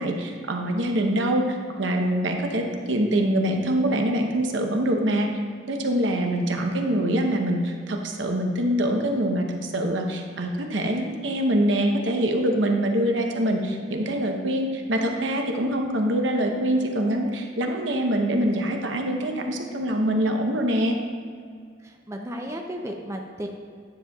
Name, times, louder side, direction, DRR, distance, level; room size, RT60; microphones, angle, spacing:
voice 1, 0.0-1.4 1.8-5.3 5.7-21.0, right 1 dB, 80° right, 3 dB, 0.8 m, -24 dB
voice 2, 21.8-23.5, equal, 15° right, 2 dB, 0.5 m, -34 dB
10.0 x 6.9 x 2.3 m, 2.1 s
head